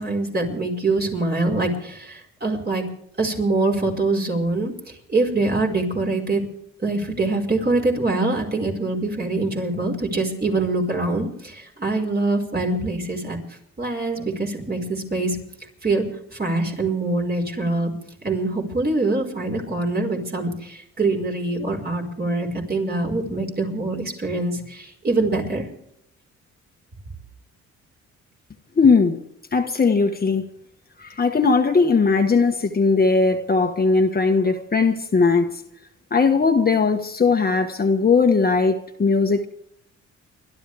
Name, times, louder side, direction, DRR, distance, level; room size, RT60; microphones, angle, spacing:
voice 1, 0.0-2.9 3.2-4.7 5.1-6.4 6.8-13.4 13.8-15.4 15.8-16.1 16.3-17.9 18.2-25.6, right 2 dB, 30° right, 1 dB, 5.3 m, -24 dB
voice 2, 28.8-29.2 29.5-30.4 31.0-35.5 36.1-39.5, left 4 dB, 30° left, 4 dB, 1.5 m, -19 dB
29.5 x 12.5 x 3.5 m, 0.74 s
cardioid pair, 90°, 30 cm